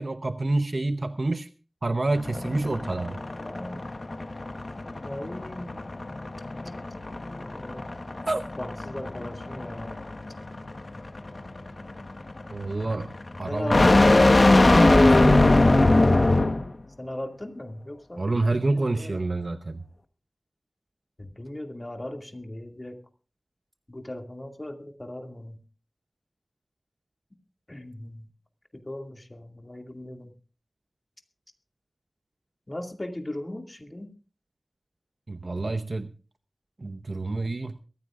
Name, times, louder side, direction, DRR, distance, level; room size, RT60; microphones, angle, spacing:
voice 1, 0.0-1.5 1.8-3.2 8.3-8.5 12.5-13.1 13.4-13.9 14.5-15.5 18.2-19.8 35.3-36.1 36.8-37.8, right 2 dB, 55° right, 9 dB, 0.8 m, -28 dB
sound 1, 2.1-16.7, left 2 dB, 50° left, 1.2 m, -22 dB
voice 2, 3.4-3.9 5.0-5.8 7.4-7.9 8.6-10.0 13.5-14.3 17.0-18.2 18.6-19.2 21.2-23.0 23.9-25.6 27.7-28.3 28.7-30.3 32.7-34.1, left 1 dB, 30° left, 4 dB, 2.3 m, -37 dB
22.0 x 14.5 x 2.5 m, 0.36 s
wide cardioid pair, 60°, 0 cm